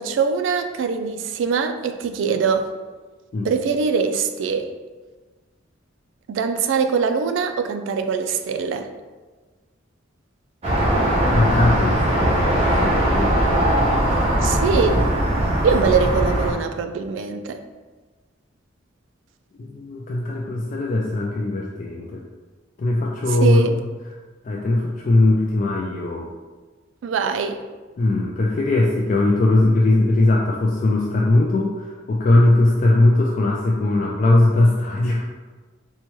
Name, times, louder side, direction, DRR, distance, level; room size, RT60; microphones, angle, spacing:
voice 1, 0.0-2.7 3.4-4.7 6.3-8.9 14.4-14.9 15.6-17.6 23.4-23.7 27.0-27.6, right 5 dB, 70° right, 7 dB, 0.3 m, -22 dB
sound 1, 10.6-16.5, right 1 dB, 30° right, 0.7 m, -19 dB
voice 2, 11.3-13.6 19.6-22.2 22.8-23.9 24.4-26.3 28.0-35.3, left 2 dB, 40° left, -2 dB, 0.3 m, -19 dB
4.3 x 2.2 x 3.0 m, 1.3 s
head